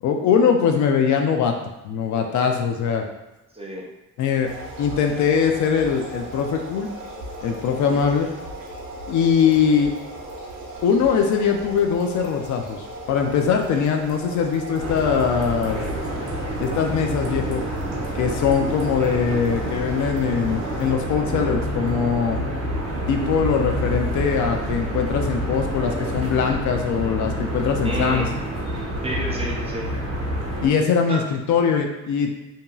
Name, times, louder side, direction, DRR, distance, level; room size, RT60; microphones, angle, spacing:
voice 1, 0.0-1.6 1.8-3.0 4.2-4.5 4.8-6.9 7.4-8.3 9.1-9.9 10.8-15.8 16.6-17.6 18.1-22.4 23.1-28.3 30.6-32.3, left 6 dB, 70° left, 3 dB, 0.5 m, -21 dB
voice 2, 3.5-3.9 7.7-8.1 19.0-19.2 27.8-28.3 29.0-29.9 31.1-31.2, right 1 dB, 20° right, -2 dB, 0.6 m, -30 dB
sound 1, 4.4-21.0, right 1 dB, 85° right, 0.7 m, -37 dB
sound 2, 14.8-30.7, equal, 50° right, 0.9 m, -27 dB
2.7 x 2.7 x 2.3 m, 0.98 s
cardioid pair, 90°, 30 cm